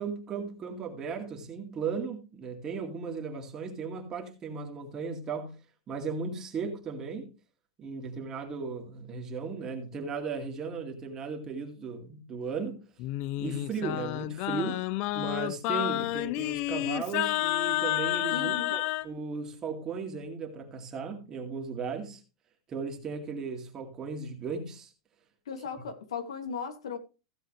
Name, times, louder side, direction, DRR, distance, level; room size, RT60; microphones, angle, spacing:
voice 1, 0.0-5.6 5.9-7.3 7.8-12.8 13.4-14.8 15.1-22.2 22.7-24.9, right 5 dB, 20° right, 2.3 m, -36 dB
Singing, 13.0-19.1, left 16 dB, 40° left, 0.4 m, -30 dB
voice 2, 18.3-18.8 25.5-27.0, left 5 dB, 85° left, 2.6 m, -36 dB
16.0 x 7.5 x 3.3 m
supercardioid pair, 155°, 3 cm